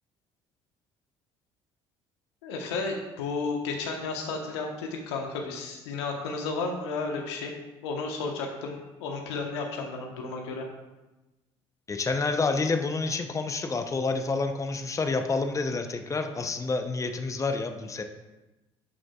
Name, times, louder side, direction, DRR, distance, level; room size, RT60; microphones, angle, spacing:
voice 1, 2.4-7.5 7.8-10.7, left 4 dB, 80° left, 2 dB, 1.2 m, -33 dB
voice 2, 11.9-18.0, left 3 dB, 20° left, 6 dB, 0.8 m, -28 dB
11.0 x 6.2 x 2.4 m, 1.1 s
hypercardioid pair, 60°, 14 cm